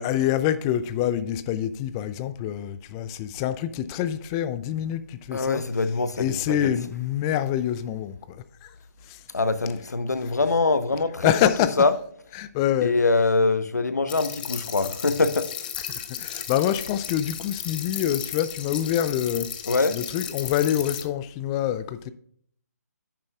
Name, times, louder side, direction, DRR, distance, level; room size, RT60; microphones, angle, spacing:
voice 1, 0.0-5.6 6.2-8.7 9.1-9.2 11.2-11.7 12.4-12.9 15.9-19.5 19.9-22.1, left 11 dB, 15° left, 0.4 m, -26 dB
voice 2, 5.3-6.7 9.3-11.5 11.8-11.9 12.8-15.5 19.6-20.0, left 3 dB, 75° left, 0.9 m, -23 dB
sound 1, 14.1-21.0, left 9 dB, 30° left, 0.8 m, -35 dB
10.5 x 9.1 x 2.4 m
figure-of-eight pair, 150°, 9 cm